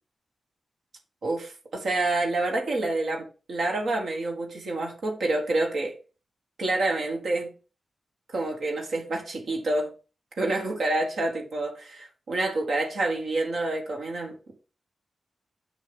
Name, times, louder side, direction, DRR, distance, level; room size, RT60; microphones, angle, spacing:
voice 1, 1.2-5.9 6.6-7.5 8.3-9.9 10.4-14.5, right 2 dB, 80° right, 1.8 m, -28 dB
6.1 x 5.7 x 3.5 m
cardioid pair, 45°, 0 cm